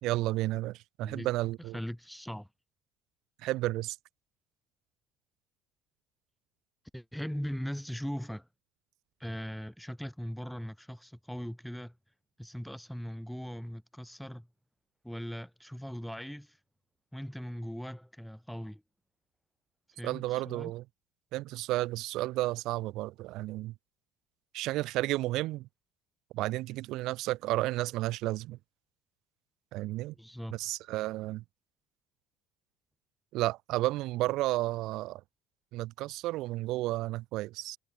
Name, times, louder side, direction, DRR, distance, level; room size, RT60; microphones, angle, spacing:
voice 1, 0.0-1.8 3.4-4.0 20.0-20.8 21.3-23.7 24.5-25.7 26.3-28.6 29.7-30.1 30.5-31.4 33.3-35.2 35.7-37.8, right 17 dB, 65° right, 1.0 m, -32 dB
voice 2, 1.7-2.5 6.9-8.5 9.2-12.0 12.4-14.5 15.0-16.6 17.1-18.8 20.0-20.7 30.1-30.6, equal, ahead, 1.6 m, -39 dB
cardioid pair, 155°, 0 cm